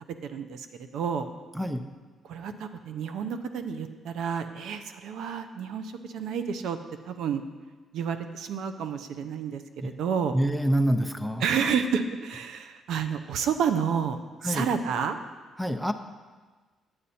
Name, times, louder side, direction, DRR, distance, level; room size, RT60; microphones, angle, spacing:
voice 1, 0.3-0.7 0.9-1.3 2.3-6.8 7.1-7.4 7.9-10.4 11.4-15.2, right 7 dB, 80° right, 8 dB, 0.6 m, -30 dB
voice 2, 10.3-11.4 14.4-14.7 15.6-15.9, equal, ahead, 9 dB, 0.6 m, -26 dB
9.6 x 8.8 x 4.2 m, 1.3 s
cardioid pair, 90°, 0 cm